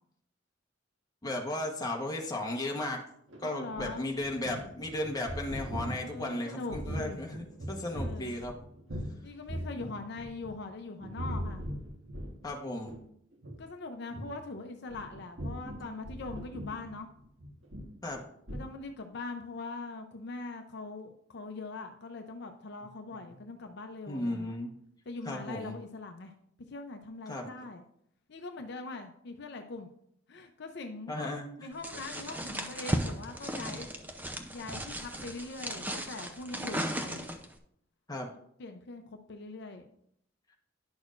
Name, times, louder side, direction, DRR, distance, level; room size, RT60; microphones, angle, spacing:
voice 1, 1.2-3.0 3.4-8.6 12.4-13.0 18.0-18.2 23.3-23.4 24.1-24.7 25.2-25.7 27.3-27.5 31.1-31.7 38.1-38.3, left 1 dB, 20° left, 0 dB, 1.2 m, -35 dB
sound 1, 3.3-9.2 9.5-10.7 11.0-12.5 12.9-13.0 13.3-13.6 14.1-14.3 14.9-18.2 18.5-18.7, equal, 80° right, 1.4 m, -40 dB
voice 2, 3.4-4.1 5.9-7.3 7.9-8.4 9.2-11.6 13.6-17.1 18.5-24.6 25.1-26.3 26.7-27.8 28.3-29.9 30.3-31.3 31.6-33.9 34.5-37.2 38.6-39.9, left 3 dB, 65° left, 5 dB, 0.6 m, -42 dB
sound 2, 31.8-37.5, equal, 10° right, 0.6 m, -36 dB
10.5 x 6.2 x 2.5 m, 0.69 s
head